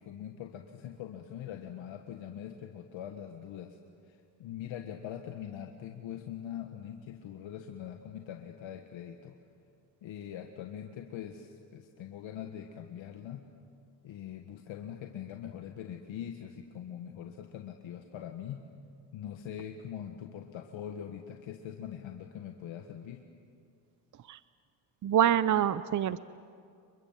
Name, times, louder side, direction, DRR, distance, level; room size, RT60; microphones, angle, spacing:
voice 1, 0.0-3.8 4.0-9.4 10.0-13.5 14.0-18.6 19.1-23.3, left 9 dB, 65° left, 5 dB, 1.6 m, -42 dB
voice 2, 25.0-26.2, right 10 dB, 40° right, 16 dB, 0.7 m, -25 dB
28.5 x 23.5 x 7.4 m, 2.3 s
supercardioid pair, 70°, 49 cm